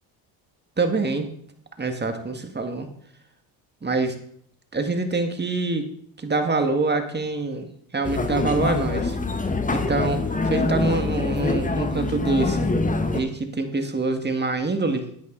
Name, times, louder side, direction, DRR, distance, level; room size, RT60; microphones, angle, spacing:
voice 1, 0.8-1.3 1.8-2.9 3.8-4.2 4.7-5.9 6.2-7.7 7.9-9.2 9.7-12.7 13.1-15.2, right 3 dB, 20° right, 6 dB, 1.9 m, -25 dB
sound 1, 8.0-13.2, left 3 dB, 15° left, 1.3 m, -25 dB
11.0 x 8.6 x 3.9 m, 0.66 s
supercardioid pair, 70°, 47 cm